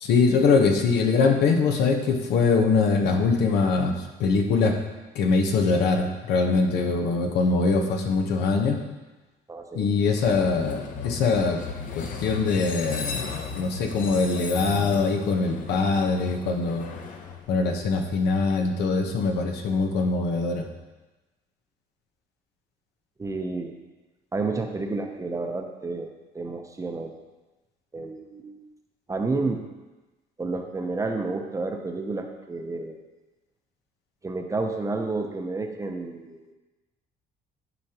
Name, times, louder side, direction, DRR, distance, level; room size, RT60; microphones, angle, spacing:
voice 1, 0.0-3.9 4.2-4.8 5.1-8.8 9.7-11.6 11.9-13.2 13.5-16.9 17.5-20.7, left 4 dB, 80° left, 3 dB, 1.0 m, -23 dB
voice 2, 9.5-9.9 23.2-23.8 24.3-27.1 27.9-28.6 29.1-29.7 30.4-33.0 34.2-36.5, right 3 dB, 20° right, 4 dB, 0.7 m, -30 dB
Train, 10.2-18.1, left 5 dB, 50° left, 0.8 m, -36 dB
11.0 x 5.1 x 2.9 m, 1.1 s
cardioid pair, 110°, 17 cm